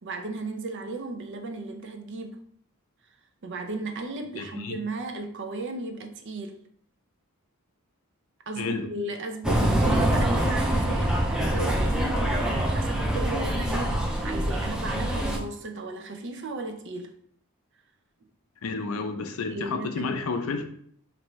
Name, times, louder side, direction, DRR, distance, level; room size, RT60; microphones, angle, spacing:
voice 1, 0.0-2.4 3.4-6.6 8.5-17.1 19.5-20.2, right 2 dB, 55° right, 0.5 m, -35 dB
voice 2, 4.4-4.8 8.6-8.9 18.6-20.6, left 4 dB, 75° left, 0.5 m, -31 dB
sound 1, 9.4-15.4, right 1 dB, 5° right, 0.4 m, -25 dB
4.4 x 2.6 x 3.1 m
head